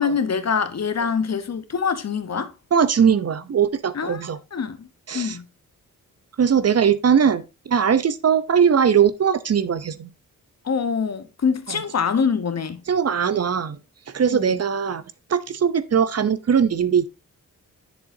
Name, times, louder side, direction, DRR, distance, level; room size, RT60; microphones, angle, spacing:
voice 1, 0.0-2.5 3.9-4.9 5.1-5.5 10.6-12.8 14.3-14.6, left 6 dB, 45° left, 0.9 m, -25 dB
voice 2, 2.7-4.4 5.1-5.4 6.4-10.1 11.7-11.8 12.9-13.8 14.1-15.0 15.3-17.1, right 7 dB, 45° right, 0.7 m, -20 dB
7.7 x 6.8 x 2.7 m
cardioid pair, 50°, 35 cm